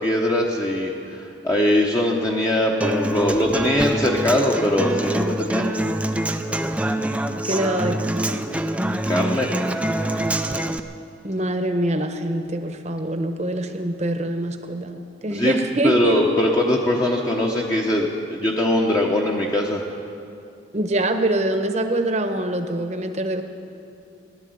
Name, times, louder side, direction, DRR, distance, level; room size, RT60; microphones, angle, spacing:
voice 1, 0.0-5.6 8.9-9.5 15.3-15.5 15.8-19.8, left 1 dB, 20° left, -1 dB, 0.9 m, -21 dB
Human voice / Acoustic guitar, 2.8-10.8, right 1 dB, 5° right, 0.4 m, -25 dB
voice 2, 7.3-8.4 11.2-16.1 20.7-23.4, right 1 dB, 35° right, 7 dB, 1.0 m, -24 dB
16.5 x 11.5 x 7.8 m, 2.7 s
head